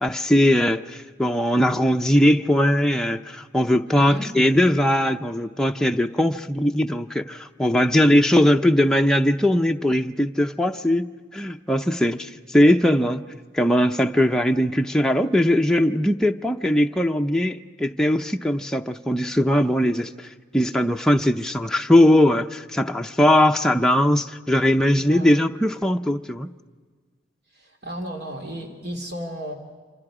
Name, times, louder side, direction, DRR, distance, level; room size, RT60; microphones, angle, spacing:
voice 1, 0.0-11.1 11.3-13.2 13.5-26.5, left 1 dB, 5° left, 3 dB, 0.6 m, -20 dB
voice 2, 3.9-4.3 25.1-25.3 27.5-29.5, equal, 60° right, 2 dB, 2.7 m, -34 dB
27.5 x 27.0 x 5.0 m, 1.5 s
head